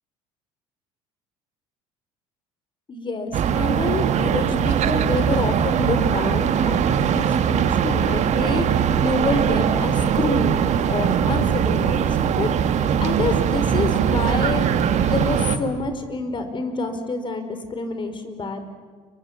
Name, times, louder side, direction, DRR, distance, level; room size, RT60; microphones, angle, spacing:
voice 1, 2.9-12.5 13.0-18.7, left 3 dB, 35° left, 9 dB, 4.6 m, -27 dB
sound 1, 3.3-15.6, right 8 dB, 55° right, 1.9 m, -21 dB
30.0 x 24.0 x 7.4 m, 1.5 s
supercardioid pair, 80°, 14 cm